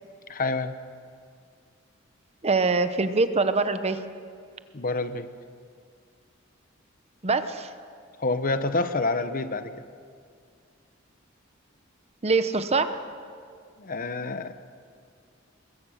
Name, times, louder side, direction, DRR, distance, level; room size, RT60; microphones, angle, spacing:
voice 1, 0.3-0.7 4.7-5.3 8.2-9.7 13.8-14.5, left 3 dB, 45° left, 11 dB, 0.9 m, -27 dB
voice 2, 2.4-4.0 7.2-7.7 12.2-13.0, right 3 dB, 30° right, 10 dB, 0.9 m, -23 dB
24.0 x 21.5 x 6.4 m, 2.2 s
head